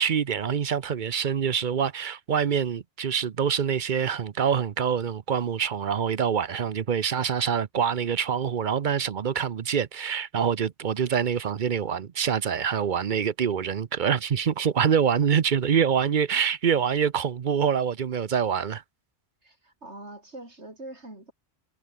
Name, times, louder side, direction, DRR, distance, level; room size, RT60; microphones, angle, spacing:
voice 1, 0.0-18.8, right 7 dB, 50° right, 0.8 m, -25 dB
voice 2, 19.4-21.3, right 2 dB, 80° right, 6.5 m, -43 dB
omnidirectional pair, 1.1 m